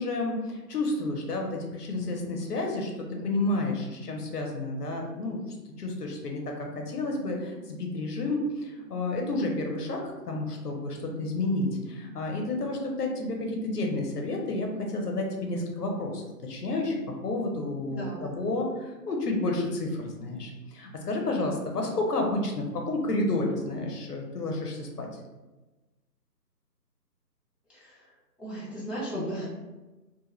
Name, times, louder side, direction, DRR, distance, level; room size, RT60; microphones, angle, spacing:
voice 1, 0.0-5.4 5.8-25.1 29.1-29.5, left 2 dB, 65° left, 1 dB, 0.6 m, -30 dB
voice 2, 17.9-18.3 27.7-28.1 28.4-29.5, equal, 5° right, -8 dB, 0.4 m, -36 dB
2.2 x 2.0 x 2.9 m, 1.1 s
hypercardioid pair, 175°, 50 cm